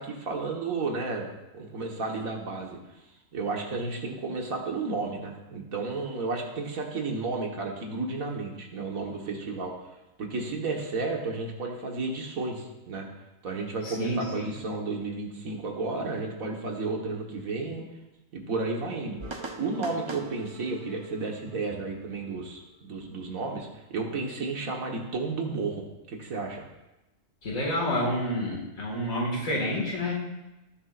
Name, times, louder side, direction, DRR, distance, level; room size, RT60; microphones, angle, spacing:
voice 1, 0.0-2.8 3.3-9.8 10.2-13.1 13.4-17.9 18.3-19.2 19.6-26.6, right 3 dB, 90° right, 1 dB, 2.0 m, -32 dB
voice 2, 13.8-14.4 27.4-30.2, left 1 dB, 80° left, -2 dB, 2.6 m, -29 dB
sound 1, 19.2-22.9, right 2 dB, 25° right, 0.8 m, -42 dB
18.0 x 7.4 x 2.6 m, 1.0 s
omnidirectional pair, 1.4 m